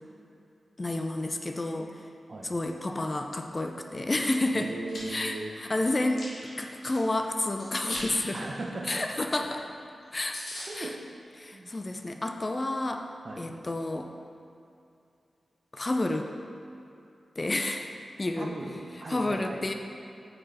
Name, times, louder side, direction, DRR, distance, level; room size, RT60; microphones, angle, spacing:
voice 1, 0.8-2.0 2.4-4.7 5.1-6.3 6.6-8.4 8.9-9.6 10.1-10.4 10.8-10.9 11.4-13.0 13.4-14.1 15.7-16.3 17.4-17.9 18.2-18.5 19.1-19.7, left 2 dB, 35° left, 4 dB, 0.4 m, -30 dB
voice 2, 4.5-5.6 8.3-9.5 10.7-11.0 11.5-11.7 13.2-13.5 18.4-19.7, right 2 dB, 50° right, 1 dB, 0.7 m, -38 dB
Chewing mastication, 4.6-5.0 5.5-7.0 7.6-8.1 8.4-8.6 8.9-9.0 9.3-9.4 9.8-9.9 10.0-10.1 10.3-10.7, left 1 dB, 75° left, 1.5 m, -40 dB
5.0 x 4.6 x 4.3 m, 2.6 s
cardioid pair, 50°, 0 cm